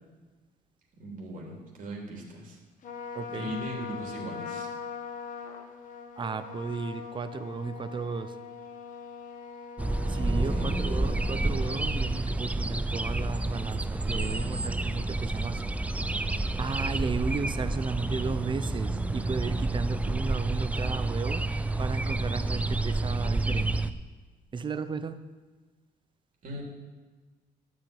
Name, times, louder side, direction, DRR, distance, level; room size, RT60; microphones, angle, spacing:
voice 1, 1.0-2.6 3.3-4.7 10.5-10.8 26.4-26.6, equal, 50° right, -2 dB, 3.3 m, -39 dB
Trumpet, 2.8-12.2, left 6 dB, 50° left, 1.4 m, -42 dB
voice 2, 3.1-3.5 6.2-8.3 10.1-15.6 16.6-21.5 21.8-23.7 24.5-25.2, right 4 dB, 30° right, 11 dB, 0.8 m, -34 dB
sound 1, 9.8-23.9, right 2 dB, 10° right, 0.5 m, -29 dB
12.5 x 5.1 x 8.8 m, 1.4 s
cardioid pair, 110°, 17 cm